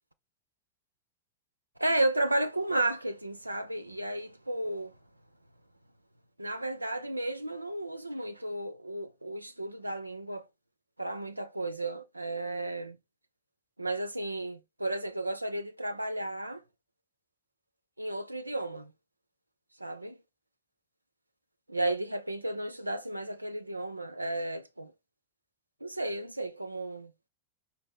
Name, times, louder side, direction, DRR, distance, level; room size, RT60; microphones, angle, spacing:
voice 1, 1.8-4.9 6.4-10.5 11.0-13.0 13.8-16.6 18.0-18.9 19.8-20.2 21.7-24.9 25.8-27.1, right 1 dB, 85° right, 0.3 m, -33 dB
5.1 x 2.5 x 4.3 m
figure-of-eight pair, 90°, 0 cm